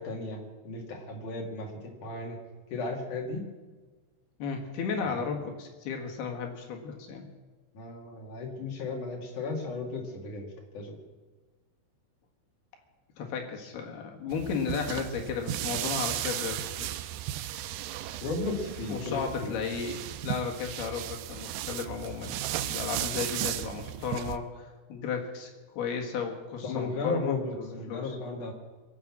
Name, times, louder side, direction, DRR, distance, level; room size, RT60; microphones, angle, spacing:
voice 1, 0.0-2.4 2.7-3.5 5.0-5.1 7.7-11.0 18.2-19.5 26.6-28.5, left 3 dB, 50° left, 1 dB, 3.2 m, -35 dB
voice 2, 4.4-7.3 13.2-17.1 18.9-24.5 24.9-28.2, left 6 dB, 65° left, 2 dB, 3.6 m, -34 dB
sound 1, 14.3-24.4, right 13 dB, 90° right, 2.2 m, -35 dB
23.5 x 7.8 x 7.3 m, 1.3 s
omnidirectional pair, 5.1 m